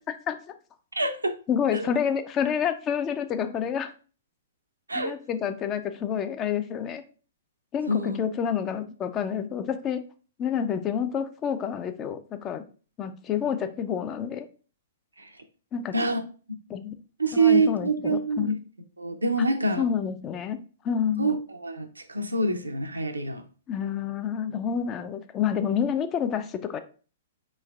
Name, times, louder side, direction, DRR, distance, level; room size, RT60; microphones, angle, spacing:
voice 1, 0.9-1.3 1.7-1.8 4.9-5.1 7.9-8.2 15.2-15.3 15.9-16.2 17.2-18.6 19.0-19.8 21.2-23.4, right 3 dB, 90° right, 6 dB, 0.5 m, -25 dB
voice 2, 1.5-3.9 4.9-7.0 7.7-10.0 10.4-12.6 13.0-14.5 15.7-15.9 16.7-16.9 17.3-18.6 19.8-20.6 20.8-21.3 23.7-26.8, left 8 dB, 25° left, 9 dB, 0.4 m, -28 dB
4.2 x 3.1 x 2.3 m, 0.38 s
figure-of-eight pair, 115°, 0 cm